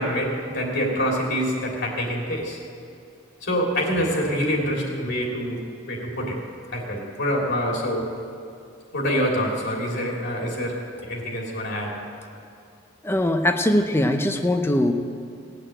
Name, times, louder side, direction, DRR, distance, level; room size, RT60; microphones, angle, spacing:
voice 1, 0.0-2.6 3.4-6.4 6.7-8.1 8.9-12.0, equal, 60° left, -1 dB, 3.1 m, -26 dB
voice 2, 13.0-14.9, left 1 dB, 10° left, 5 dB, 0.7 m, -21 dB
18.0 x 6.6 x 8.9 m, 2.5 s
head